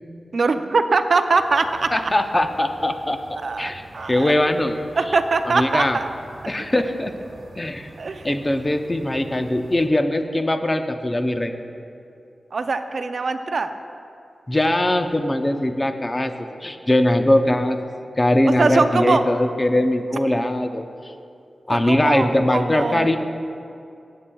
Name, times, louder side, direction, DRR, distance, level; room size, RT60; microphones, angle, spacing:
voice 1, 0.3-2.1 3.4-4.4 5.0-6.1 8.0-8.3 12.5-13.7 18.5-19.2 21.7-23.1, right 4 dB, 55° right, 8 dB, 0.4 m, -22 dB
sound 1, 1.3-9.9, right 2 dB, 90° right, 1.1 m, -46 dB
voice 2, 1.9-3.8 4.1-4.8 5.4-6.0 6.5-7.1 7.6-7.9 8.2-11.5 14.5-16.3 16.6-17.8 18.2-21.1 21.7-23.2, left 1 dB, 20° left, 7 dB, 0.5 m, -21 dB
16.0 x 8.3 x 2.3 m, 2.5 s
wide cardioid pair, 130°, 0 cm